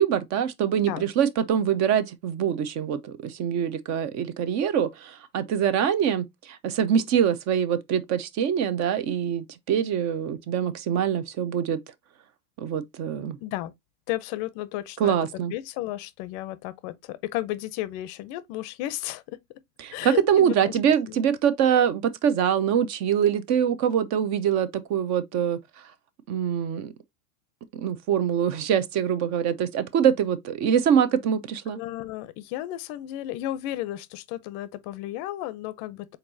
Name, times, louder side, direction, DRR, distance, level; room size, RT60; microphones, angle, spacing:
voice 1, 0.0-11.8 12.6-13.4 15.0-15.5 19.8-25.6 26.3-26.9 27.7-31.8, right 8 dB, 40° right, 0.8 m, -24 dB
voice 2, 13.4-13.7 14.1-15.2 15.5-19.4 19.9-20.8 21.1-21.2 31.7-36.2, left 15 dB, 40° left, 0.6 m, -33 dB
4.4 x 4.0 x 2.6 m
hypercardioid pair, 110°, 44 cm